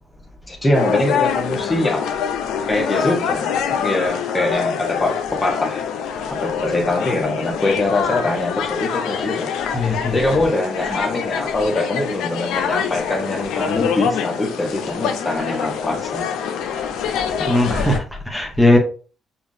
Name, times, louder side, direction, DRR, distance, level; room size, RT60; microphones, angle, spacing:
voice 1, 0.5-2.1 2.7-5.8 6.3-9.5 10.1-16.3, left 2 dB, 25° left, 1.1 m, -23 dB
sound 1, 0.7-18.0, left 7 dB, 85° left, 0.5 m, -25 dB
voice 2, 9.7-10.2 10.8-11.0 17.4-18.8, left 1 dB, ahead, 1.0 m, -18 dB
5.7 x 2.5 x 2.7 m
cardioid pair, 75°, 0 cm